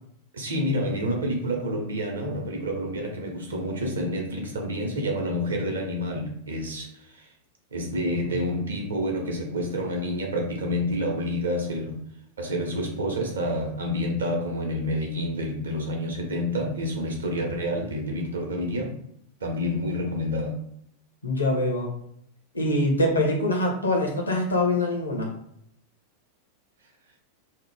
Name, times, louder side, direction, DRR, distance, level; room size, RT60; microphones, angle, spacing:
voice 1, 0.3-7.3 7.7-12.0 12.4-18.9 19.4-20.6, equal, 70° right, 0.7 m, -28 dB
voice 2, 21.2-21.9 22.5-25.3, left 1 dB, 80° left, 0.7 m, -24 dB
2.8 x 2.1 x 3.2 m
figure-of-eight pair, 90°, 0 cm